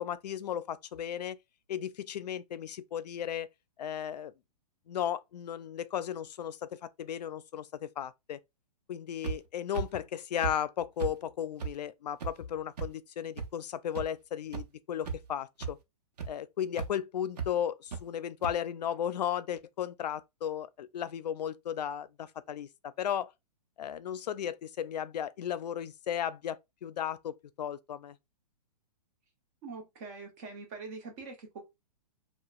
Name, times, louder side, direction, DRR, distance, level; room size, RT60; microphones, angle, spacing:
voice 1, 0.0-1.4 1.7-3.5 3.8-4.3 4.9-8.4 8.9-15.8 16.3-23.3 23.8-28.2, left 9 dB, 85° left, 0.4 m, -35 dB
sound 1, 9.2-9.4 9.7-9.9 10.4-10.5 11.0-11.1 11.6-11.7 12.2-12.3 12.8-12.9 13.4-13.5 14.0-14.1 14.5-14.6 15.0-15.3 15.6-15.7 16.2-16.3 16.8-16.9 17.4-17.5 17.9-18.0 18.4-18.5, right 6 dB, 75° right, 0.8 m, -34 dB
voice 2, 29.6-31.6, right 4 dB, 25° right, 0.8 m, -43 dB
2.9 x 2.1 x 2.3 m
hypercardioid pair, 170°, 20 cm